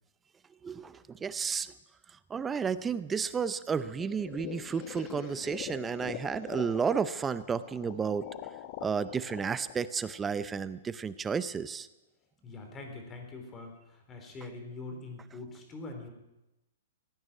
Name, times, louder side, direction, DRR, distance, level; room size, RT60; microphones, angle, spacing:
voice 1, 0.6-1.7 2.3-8.3 8.8-11.9, right 6 dB, 15° right, 15 dB, 0.6 m, -32 dB
sound 1, 4.0-10.9, left 12 dB, 40° left, 1.0 m, -44 dB
voice 2, 12.4-16.1, left 3 dB, 20° left, 4 dB, 3.8 m, -43 dB
16.0 x 9.6 x 8.9 m, 0.96 s
hypercardioid pair, 140°, 0 cm